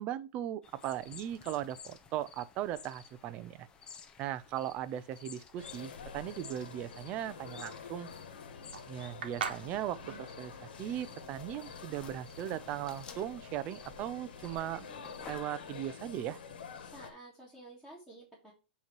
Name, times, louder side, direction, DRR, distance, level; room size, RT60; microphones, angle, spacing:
voice 1, 0.0-3.7 4.2-8.1 8.9-14.9 15.3-16.4, right 11 dB, 25° right, 0.4 m, -38 dB
sound 1, 0.6-15.4, left 6 dB, 15° left, 0.6 m, -54 dB
sound 2, 5.6-17.1, left 6 dB, 80° left, 1.5 m, -48 dB
sound 3, 7.6-12.7, right 6 dB, 75° right, 1.3 m, -43 dB
voice 2, 16.8-18.5, right 1 dB, 5° right, 1.6 m, -52 dB
8.2 x 3.0 x 4.6 m
supercardioid pair, 160°, 5 cm